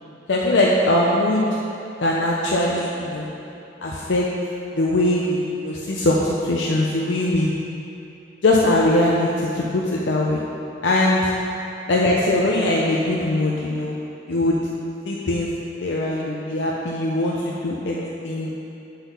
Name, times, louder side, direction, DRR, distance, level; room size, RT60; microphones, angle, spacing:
voice 1, 0.3-1.5 2.0-3.3 3.8-4.3 4.7-7.5 8.4-10.4 10.8-11.3 11.9-14.0 14.3-14.6 15.1-15.5 15.8-18.5, left 1 dB, 75° left, -3 dB, 0.6 m, -21 dB
8.1 x 4.0 x 5.3 m, 2.8 s
head